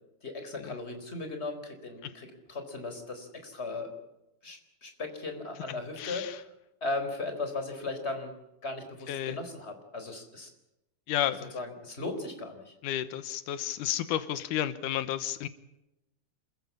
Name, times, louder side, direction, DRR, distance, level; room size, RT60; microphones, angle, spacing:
voice 1, 0.2-3.9 4.4-6.5 6.8-8.3 8.6-10.5 11.5-12.7, left 3 dB, 20° left, 6 dB, 4.2 m, -37 dB
voice 2, 6.0-6.4 9.1-9.4 11.1-11.5 12.8-15.5, left 11 dB, 90° left, 13 dB, 2.6 m, -32 dB
28.0 x 15.5 x 8.6 m, 0.91 s
omnidirectional pair, 3.6 m